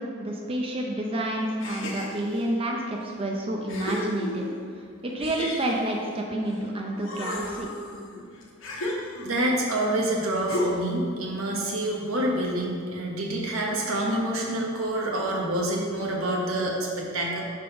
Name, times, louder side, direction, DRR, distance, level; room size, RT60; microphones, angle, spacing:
voice 1, 0.0-4.5 5.0-7.7, right 1 dB, 25° right, 0 dB, 0.5 m, -29 dB
sound 1, 1.6-2.5 3.1-3.2 3.7-4.7 5.2-6.6 7.0-9.5 10.5-11.0, left 1 dB, 65° left, 1.0 m, -33 dB
voice 2, 9.2-17.4, right 1 dB, 85° right, -2 dB, 1.1 m, -27 dB
5.4 x 3.9 x 5.6 m, 2.3 s
head